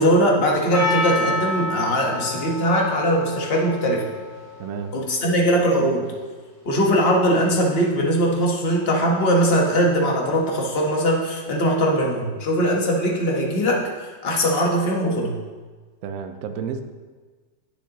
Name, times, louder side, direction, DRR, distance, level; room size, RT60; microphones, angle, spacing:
voice 1, 0.0-4.0 4.9-6.1 6.6-13.8 14.2-15.3, equal, 35° left, -1 dB, 1.3 m, -20 dB
Percussion, 0.7-5.7, left 2 dB, 70° left, 3.2 m, -29 dB
voice 2, 4.6-5.0 16.0-16.8, right 7 dB, 70° right, 8 dB, 0.9 m, -31 dB
10.0 x 8.3 x 2.9 m, 1.4 s
omnidirectional pair, 2.0 m